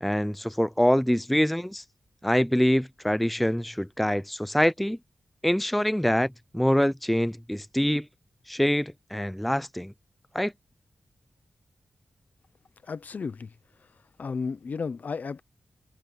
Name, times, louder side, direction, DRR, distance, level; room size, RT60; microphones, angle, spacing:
voice 1, 0.0-1.8 2.2-5.0 5.4-8.1 8.5-9.9 10.3-10.5, equal, ahead, 0.4 m, -25 dB
voice 2, 12.9-13.5 14.2-15.4, left 5 dB, 55° left, 0.8 m, -33 dB
wide cardioid pair, 135°, 3 cm